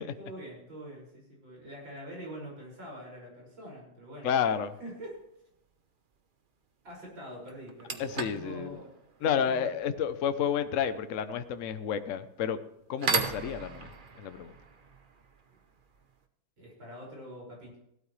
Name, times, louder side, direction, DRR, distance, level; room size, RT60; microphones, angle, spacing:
voice 1, 0.0-4.3 4.8-5.2 6.8-8.0 8.3-8.9 9.2-9.6 16.6-17.8, right 1 dB, 65° right, -2 dB, 6.6 m, -44 dB
voice 2, 4.2-4.7 8.0-8.8 9.2-12.6 12.9-13.9 14.2-14.5, left 8 dB, 55° left, 10 dB, 0.9 m, -30 dB
sound 1, 4.6-4.8 6.9-7.0 7.5-16.2, right 5 dB, 45° right, 0.6 m, -38 dB
17.0 x 12.5 x 3.3 m, 0.80 s
omnidirectional pair, 2.2 m